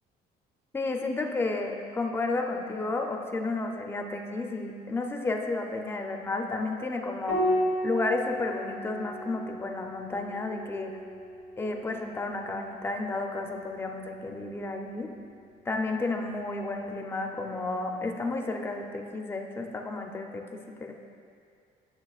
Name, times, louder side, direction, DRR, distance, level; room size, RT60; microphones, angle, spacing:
voice 1, 0.7-7.5 7.8-10.9 11.6-15.1 15.7-20.9, left 3 dB, 15° left, 3 dB, 0.5 m, -32 dB
Piano, 7.3-12.1 13.8-14.6, equal, 90° right, 1.5 m, -33 dB
8.8 x 6.5 x 2.4 m, 2.3 s
cardioid pair, 110°, 17 cm